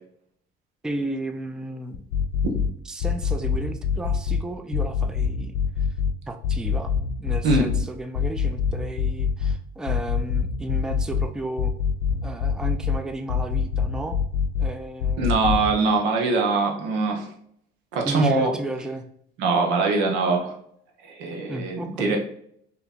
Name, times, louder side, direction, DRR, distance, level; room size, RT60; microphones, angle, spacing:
voice 1, 0.8-2.0 2.9-5.6 6.3-6.9 7.2-11.7 12.2-14.2 14.6-15.6 18.0-19.0 21.5-22.2, right 1 dB, 5° right, 7 dB, 0.4 m, -33 dB
sound 1, 1.9-2.7 3.0-4.4 4.7-6.1 6.4-7.8 8.1-9.5 9.9-11.2 11.6-13.0 13.3-14.7 15.0-15.7, left 7 dB, 85° left, 0.6 m, -24 dB
voice 2, 15.2-17.3 17.9-18.5 19.4-20.5 21.0-22.2, right 3 dB, 85° right, 2 dB, 0.9 m, -22 dB
3.3 x 2.9 x 4.1 m, 0.66 s
supercardioid pair, 90°, 19 cm